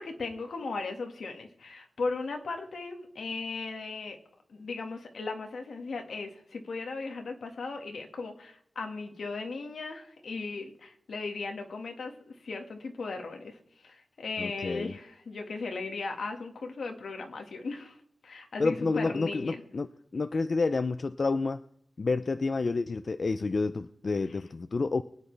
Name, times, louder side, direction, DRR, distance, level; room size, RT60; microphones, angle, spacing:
voice 1, 0.0-4.2 4.5-18.0 18.2-19.6, left 3 dB, 70° left, 4 dB, 1.8 m, -37 dB
voice 2, 14.4-15.0 18.6-21.6 22.0-25.0, left 3 dB, 40° left, 11 dB, 0.4 m, -29 dB
23.5 x 9.2 x 3.3 m, 0.69 s
wide cardioid pair, 145°, 0 cm